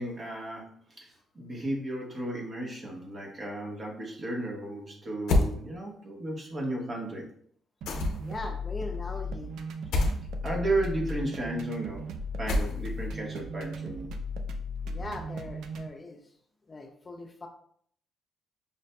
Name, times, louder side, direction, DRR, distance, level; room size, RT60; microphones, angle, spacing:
voice 1, 0.0-7.3 10.4-14.1, right 1 dB, 40° right, -1 dB, 1.1 m, -34 dB
sound 1, 5.3-5.5 7.9-8.4 9.9-10.2 12.5-13.0, left 2 dB, 80° left, 0.5 m, -25 dB
sound 2, 7.8-15.9, left 1 dB, 80° right, 0.4 m, -36 dB
voice 2, 8.1-9.5 14.8-16.2 16.7-17.5, left 2 dB, 30° left, 3 dB, 0.5 m, -40 dB
5.5 x 2.5 x 2.2 m, 0.62 s
cardioid pair, 90°, 0 cm